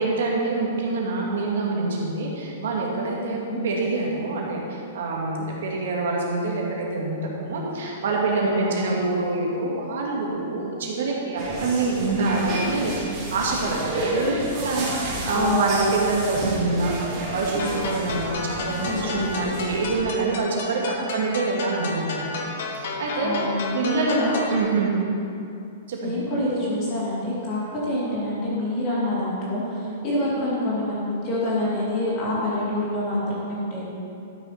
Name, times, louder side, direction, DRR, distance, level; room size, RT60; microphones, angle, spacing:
voice 1, 0.0-14.4 14.6-16.9 17.3-22.4 22.7-23.3 23.7-24.9 25.9-26.1 29.8-30.0, right 3 dB, 65° right, -3 dB, 2.3 m, -26 dB
voice 2, 3.3-3.6 8.5-8.9 15.3-15.8 18.8-19.5 23.2-24.4 26.0-33.9, left 1 dB, 25° left, -6 dB, 2.6 m, -27 dB
sound 1, 11.4-20.0, right 1 dB, 25° right, 3.0 m, -31 dB
sound 2, 17.6-24.6, left 3 dB, 50° left, 1.3 m, -33 dB
13.0 x 6.3 x 5.9 m, 2.6 s
supercardioid pair, 180°, 0 cm